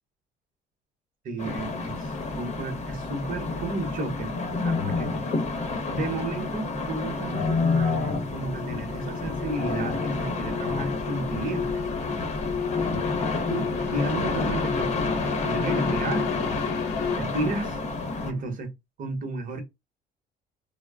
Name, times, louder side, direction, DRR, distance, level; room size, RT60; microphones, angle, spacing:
voice 1, 1.2-5.2 5.9-11.8 12.8-13.0 13.5-16.3 16.6-16.8 17.2-17.8 18.2-18.7 19.0-19.6, right 2 dB, 55° right, 0.9 m, -33 dB
sound 1, 1.4-18.3, left 3 dB, 40° left, 0.8 m, -29 dB
sound 2, 6.6-17.2, left 7 dB, 75° left, 0.4 m, -34 dB
2.1 x 2.1 x 3.4 m
cardioid pair, 110°, 17 cm